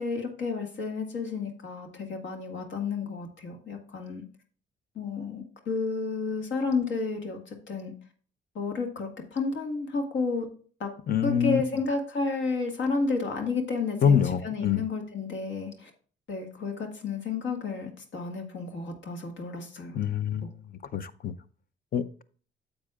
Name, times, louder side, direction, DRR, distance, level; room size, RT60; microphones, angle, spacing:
voice 1, 0.0-4.3 5.0-7.4 7.7-7.9 8.6-10.5 10.8-10.9 11.2-15.9 16.3-20.0, left 4 dB, 70° left, 3 dB, 1.8 m, -31 dB
voice 2, 11.1-11.6 14.0-14.8 19.9-20.5 20.9-21.3 21.9-22.2, left 7 dB, 45° left, 14 dB, 0.6 m, -25 dB
9.7 x 7.3 x 2.4 m, 0.43 s
cardioid pair, 90°, 20 cm